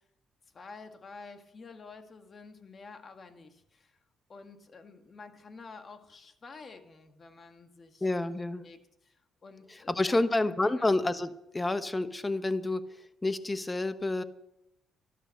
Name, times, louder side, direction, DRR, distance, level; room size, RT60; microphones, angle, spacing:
voice 1, 0.5-4.0 4.3-8.0 8.3-10.9, left 4 dB, 40° left, 6 dB, 1.8 m, -50 dB
voice 2, 8.0-8.6 9.7-12.8 13.2-14.2, left 2 dB, 20° left, 11 dB, 1.0 m, -29 dB
13.0 x 12.5 x 6.6 m, 0.83 s
cardioid pair, 90°, 0 cm